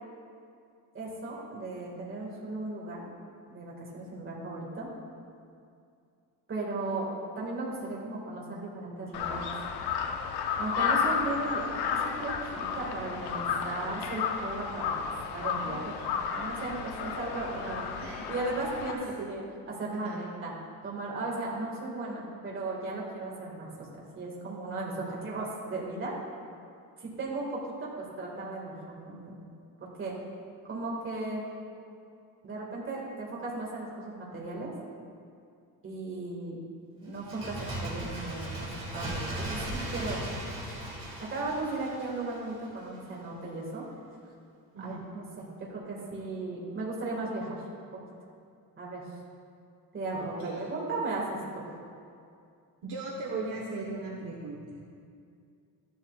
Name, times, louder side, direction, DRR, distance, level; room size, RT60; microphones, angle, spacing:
voice 1, 0.9-3.1 3.5-4.9 6.5-7.1 7.4-9.4 10.6-15.9 16.3-17.9 18.3-19.0 19.3-20.5 20.8-23.9 24.2-26.1 27.0-29.5 29.8-30.2 30.7-31.5 32.4-34.7 35.8-36.6 37.0-40.3 41.2-43.8 44.8-47.6 47.9-48.0 48.8-49.1 49.9-51.4, right 2 dB, 30° right, -4 dB, 2.0 m, -36 dB
Crow, 9.1-18.9, left 6 dB, 80° left, 0.8 m, -32 dB
voice 2, 18.9-19.3 19.9-20.2 44.7-45.0 50.1-50.6 52.8-54.8, right 3 dB, 60° right, -3 dB, 1.3 m, -38 dB
Bird, 37.1-42.7 43.0-43.1, right 1 dB, 15° right, 2.6 m, -37 dB
12.5 x 11.0 x 2.4 m, 2.4 s
cardioid pair, 175°, 39 cm